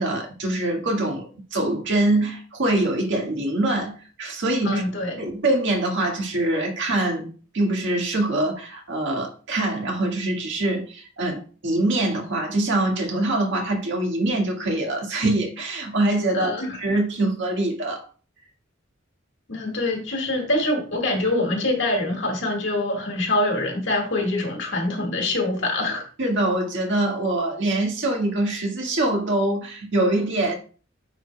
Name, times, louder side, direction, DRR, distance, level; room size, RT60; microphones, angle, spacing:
voice 1, 0.0-4.8 5.2-18.0 26.2-30.6, right 2 dB, 65° right, 1.8 m, -24 dB
voice 2, 4.6-5.2 16.3-16.8 19.5-26.1, left 2 dB, 65° left, 1.9 m, -25 dB
9.4 x 5.1 x 2.3 m
head